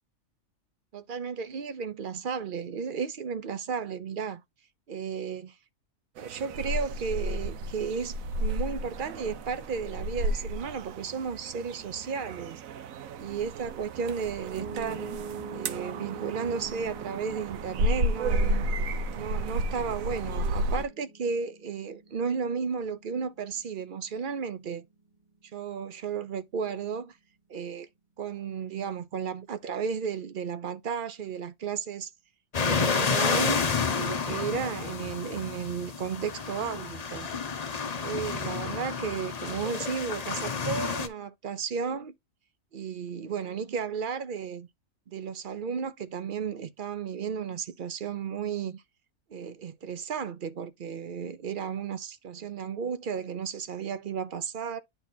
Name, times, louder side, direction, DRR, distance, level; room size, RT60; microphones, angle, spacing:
voice 1, 0.9-4.4 4.9-5.6 6.2-12.6 13.2-15.1 15.5-18.6 19.1-24.9 25.5-27.2 27.5-27.9 28.2-32.1 32.6-33.6 34.0-37.3 38.0-42.1 42.7-44.7 45.1-48.8 49.3-54.8, right 6 dB, 50° right, 0.6 m, -34 dB
sound 1, 6.2-20.8, right 1 dB, 80° right, 1.1 m, -32 dB
Piano, 14.6-26.8, right 4 dB, 30° right, 1.4 m, -45 dB
sound 2, 32.5-41.1, left 5 dB, 35° left, 0.7 m, -30 dB
9.8 x 4.2 x 2.7 m
omnidirectional pair, 1.4 m